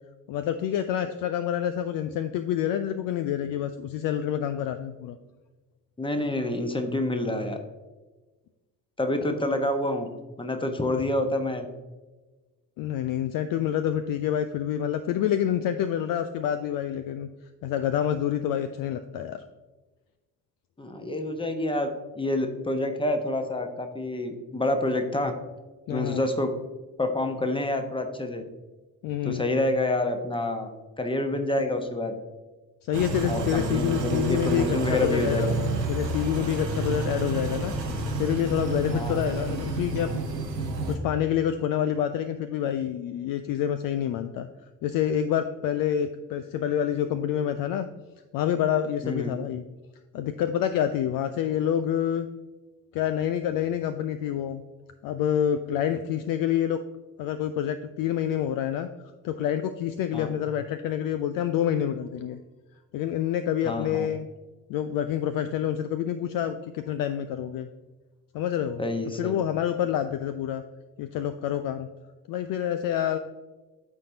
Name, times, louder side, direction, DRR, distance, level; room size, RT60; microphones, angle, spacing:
voice 1, 0.3-5.2 12.8-17.3 17.6-19.4 25.9-26.2 29.0-29.4 32.8-35.5 35.9-37.7 38.2-40.1 40.9-44.5 44.8-47.9 48.3-49.6 50.1-52.3 52.9-54.6 55.0-56.8 57.2-58.9 59.2-62.4 62.9-64.3 64.7-67.7 68.3-68.8 69.2-70.6 71.0-71.9 72.3-73.2, left 10 dB, 45° left, 10 dB, 0.5 m, -27 dB
voice 2, 6.0-7.6 9.0-10.1 10.4-11.7 20.8-21.9 22.1-25.3 25.9-26.5 27.0-28.4 29.2-30.7 31.0-32.1 33.2-35.5 38.9-39.2 49.0-49.3 60.1-60.3 63.6-64.1 68.8-69.3, left 1 dB, 10° left, 6 dB, 1.1 m, -27 dB
sound 1, 32.9-41.0, right 2 dB, 90° right, 0.8 m, -30 dB
13.0 x 4.4 x 2.8 m, 1.2 s
figure-of-eight pair, 45°, 48 cm